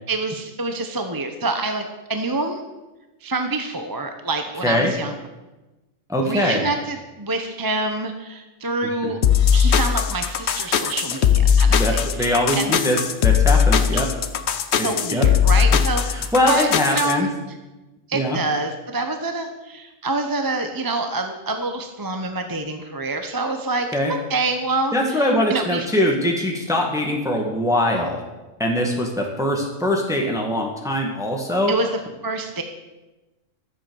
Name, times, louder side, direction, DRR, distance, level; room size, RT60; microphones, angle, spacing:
voice 1, 0.1-2.6 3.2-5.1 6.2-9.2 9.5-12.7 13.9-14.0 14.8-17.3 18.1-25.9 31.7-31.9 32.2-32.6, right 3 dB, 20° right, 6 dB, 0.7 m, -27 dB
voice 2, 6.1-6.6 9.0-9.1 11.7-14.1 14.8-15.3 16.1-17.3 18.1-18.4 23.9-24.1 24.9-28.2 28.6-31.7, left 1 dB, ahead, 0 dB, 1.7 m, -22 dB
sound 1, 9.2-17.1, left 7 dB, 60° left, 1.0 m, -18 dB
13.0 x 7.8 x 7.0 m, 1.1 s
omnidirectional pair, 1.4 m